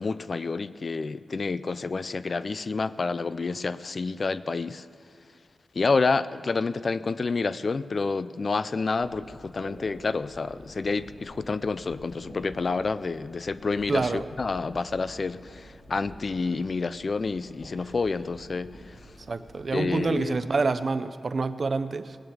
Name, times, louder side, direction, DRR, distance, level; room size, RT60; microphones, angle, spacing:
voice 1, 0.0-4.9 5.8-19.0 19.7-20.4, left 4 dB, 40° left, 15 dB, 0.3 m, -29 dB
sound 1, 9.0-20.1, equal, 75° left, 4.7 m, -48 dB
voice 2, 13.9-14.3 19.3-22.2, right 4 dB, 45° right, 12 dB, 0.5 m, -27 dB
19.0 x 9.0 x 7.2 m, 2.1 s
wide cardioid pair, 175°, 0 cm